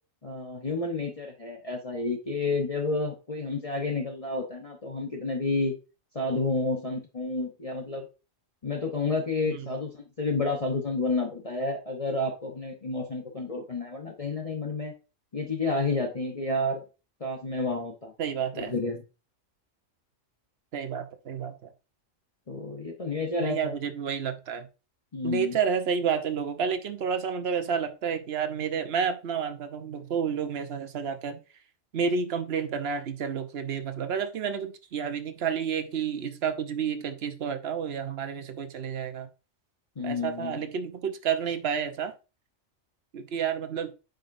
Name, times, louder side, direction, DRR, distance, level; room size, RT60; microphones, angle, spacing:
voice 1, 0.2-5.7 6.1-8.1 8.6-14.9 15.3-16.8 17.2-18.1 18.5-19.0 22.5-23.7 25.1-25.6 40.0-40.6, left 3 dB, 30° left, 1 dB, 1.0 m, -30 dB
voice 2, 18.2-18.7 20.7-21.7 23.4-24.7 25.2-31.4 31.9-39.3 40.0-42.1 43.1-43.9, right 7 dB, 55° right, 8 dB, 1.0 m, -30 dB
9.3 x 5.3 x 2.6 m, 0.30 s
omnidirectional pair, 1.4 m